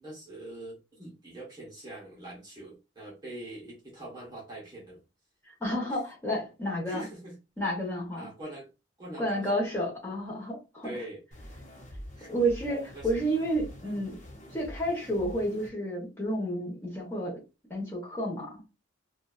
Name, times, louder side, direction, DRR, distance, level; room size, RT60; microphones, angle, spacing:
voice 1, 0.0-5.0 6.9-7.4 8.1-8.7 9.0-9.5 10.8-11.2 12.1-12.3 12.9-13.2 13.8-14.0, right 1 dB, 20° right, 0.9 m, -43 dB
voice 2, 5.6-7.0 7.6-8.3 9.2-10.9 12.3-14.2 14.5-17.4 17.7-18.7, equal, 10° left, 1.0 m, -31 dB
sound 1, 11.3-15.7, equal, 35° left, 0.7 m, -45 dB
2.6 x 2.3 x 2.4 m
head